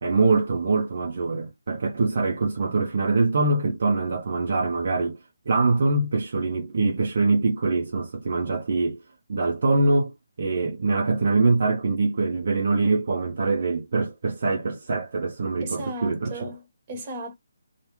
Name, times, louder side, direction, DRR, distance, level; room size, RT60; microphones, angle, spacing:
voice 1, 0.0-5.2 5.5-9.0 9.3-10.1 10.4-16.5, right 3 dB, 50° right, 0.7 m, -23 dB
voice 2, 15.6-17.3, right 1 dB, 25° right, 1.3 m, -36 dB
3.1 x 2.5 x 3.0 m
figure-of-eight pair, 145°, 0 cm